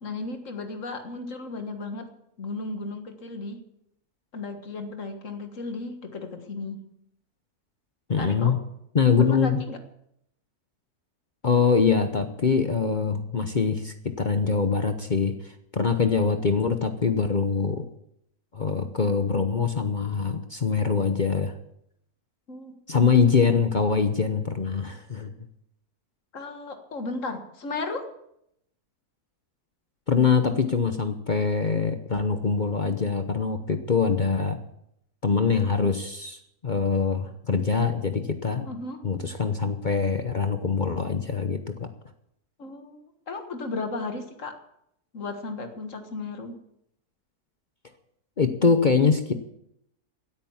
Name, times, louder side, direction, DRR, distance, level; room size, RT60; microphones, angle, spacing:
voice 1, 0.0-2.1 2.4-3.6 4.3-6.8 8.2-8.6 9.2-9.8 22.5-22.7 26.3-28.1 38.6-39.0 42.6-44.5 45.1-46.6, left 3 dB, 55° left, 6 dB, 2.0 m, -35 dB
voice 2, 8.1-8.6 8.9-9.7 11.4-15.3 15.7-17.9 18.5-21.6 22.9-25.3 30.1-34.6 35.2-36.4 36.6-38.7 39.0-41.9 48.4-49.3, left 5 dB, 40° left, 8 dB, 0.8 m, -23 dB
15.5 x 9.0 x 7.2 m, 0.76 s
omnidirectional pair, 1.6 m